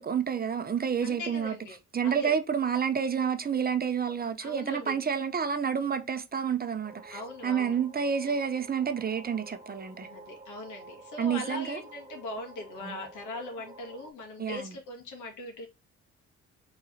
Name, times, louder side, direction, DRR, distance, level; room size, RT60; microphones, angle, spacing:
voice 1, 0.0-1.5 1.9-10.1 11.2-11.8 12.8-13.0 14.4-14.7, right 7 dB, 30° right, 0.6 m, -29 dB
voice 2, 1.0-2.3 4.4-5.0 7.1-7.8 10.0-15.7, left 2 dB, 80° left, 2.0 m, -40 dB
sound 1, 6.8-14.1, right 3 dB, 15° right, 1.2 m, -50 dB
4.7 x 3.9 x 2.7 m
cardioid pair, 90°, 30 cm